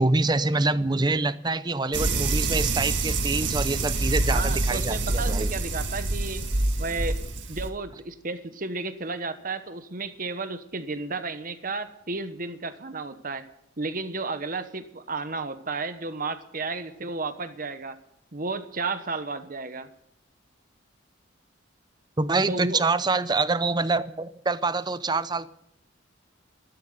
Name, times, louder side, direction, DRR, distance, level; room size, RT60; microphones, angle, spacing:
voice 1, 0.0-5.5 22.2-25.5, right 3 dB, 20° right, 0.6 m, -25 dB
sound 1, 1.9-7.7, right 2 dB, 60° right, 2.0 m, -26 dB
voice 2, 4.3-6.4 6.8-7.2 7.5-13.4 13.8-18.0 18.3-19.9 22.5-22.8, right 3 dB, 45° right, 1.1 m, -32 dB
13.5 x 13.0 x 6.6 m
head